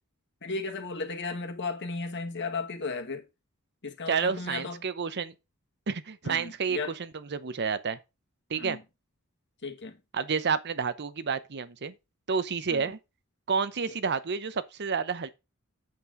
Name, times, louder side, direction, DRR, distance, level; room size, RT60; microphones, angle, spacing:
voice 1, 0.4-3.2 3.8-4.8 6.2-7.0 8.6-8.8 9.6-10.0 12.7-12.9, left 3 dB, 55° left, 1.8 m, -35 dB
voice 2, 4.1-5.3 5.9-6.8 7.1-8.0 8.5-8.8 10.1-11.9 12.3-13.0 13.5-15.3, right 5 dB, 55° right, 0.7 m, -30 dB
8.4 x 7.6 x 3.7 m
head